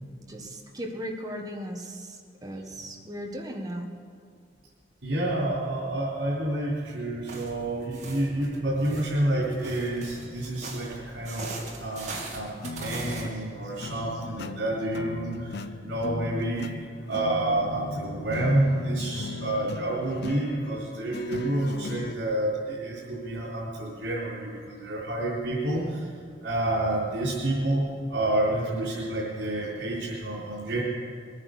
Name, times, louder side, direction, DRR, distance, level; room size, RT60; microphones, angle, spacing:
voice 1, 0.3-3.9, equal, 20° right, 2 dB, 1.5 m, -37 dB
voice 2, 5.0-11.5 11.8-26.1 26.4-30.8, right 1 dB, 80° right, -7 dB, 3.9 m, -29 dB
sound 1, 7.3-13.2, right 3 dB, 40° right, 2.5 m, -41 dB
sound 2, 12.6-22.1, left 3 dB, 60° left, 0.6 m, -38 dB
21.5 x 9.8 x 6.7 m, 2.2 s
head